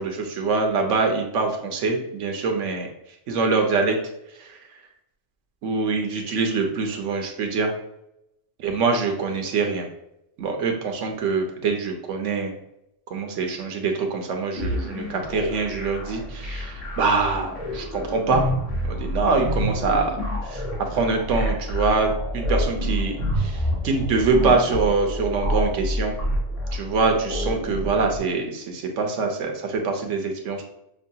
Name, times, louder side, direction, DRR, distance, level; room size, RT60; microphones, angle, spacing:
voice 1, 0.0-2.9 3.3-4.0 4.4-4.5 5.6-7.7 8.6-9.9 10.4-12.5 13.1-18.5 18.9-20.2 20.4-26.2 26.7-30.6, right 4 dB, 80° right, 3 dB, 1.0 m, -24 dB
sound 1, 14.6-28.2, equal, 75° left, 1.7 m, -28 dB
6.4 x 2.2 x 2.7 m, 0.83 s
omnidirectional pair, 1.3 m